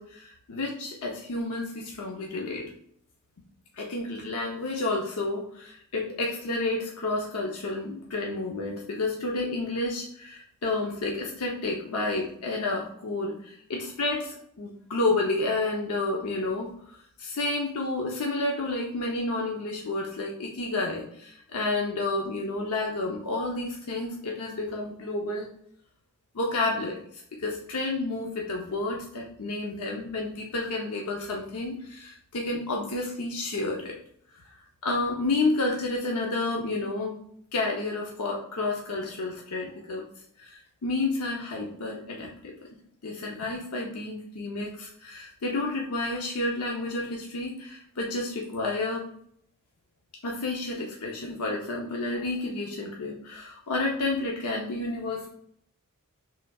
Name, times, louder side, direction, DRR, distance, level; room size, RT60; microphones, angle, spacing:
voice 1, 0.0-2.7 3.7-25.5 26.3-34.0 34.8-37.2 37.5-40.0 40.4-42.5 43.0-49.0 50.2-55.3, left 2 dB, 90° left, -1 dB, 0.7 m, -30 dB
5.9 x 3.2 x 2.3 m, 0.67 s
head